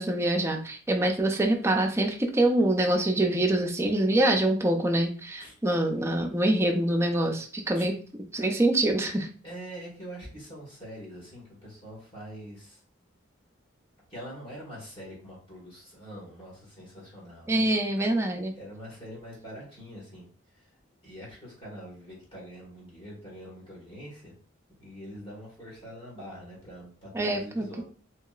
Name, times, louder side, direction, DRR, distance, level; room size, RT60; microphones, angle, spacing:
voice 1, 0.0-7.9 8.3-9.3 17.5-18.5 27.1-27.8, right 1 dB, 15° right, 2 dB, 0.4 m, -25 dB
voice 2, 9.4-12.8 14.1-17.6 18.6-20.3 20.5-20.6 21.0-24.3 24.8-27.8, equal, 30° left, -5 dB, 1.4 m, -44 dB
2.8 x 2.8 x 2.3 m, 0.41 s
head